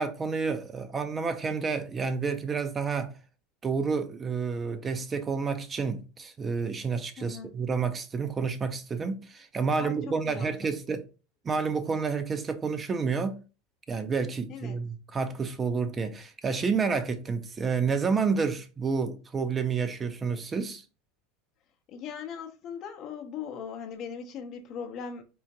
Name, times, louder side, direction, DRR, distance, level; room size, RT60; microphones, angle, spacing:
voice 1, 0.0-3.1 3.6-11.0 11.4-13.4 13.9-20.8, right 5 dB, 25° right, 0.4 m, -29 dB
voice 2, 7.2-7.5 9.7-10.7 14.5-14.8 21.9-25.2, left 7 dB, 50° left, 0.6 m, -39 dB
3.8 x 2.1 x 2.7 m
hypercardioid pair, 95°, 0 cm